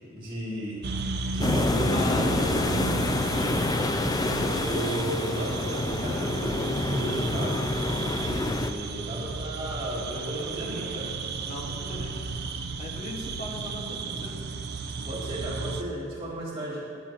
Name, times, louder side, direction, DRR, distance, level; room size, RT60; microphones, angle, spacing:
voice 1, 0.1-0.8 1.2-2.8 4.3-11.1 15.0-16.8, right 1 dB, 25° right, -8 dB, 2.8 m, -34 dB
sound 1, 0.8-15.8, right 3 dB, 50° right, 0.5 m, -33 dB
sound 2, 1.4-8.7, left 2 dB, 20° left, 0.3 m, -28 dB
voice 2, 1.9-4.3 11.4-12.2 12.8-14.4, left 1 dB, 35° left, -2 dB, 1.6 m, -38 dB
17.5 x 8.5 x 2.9 m, 2.7 s
head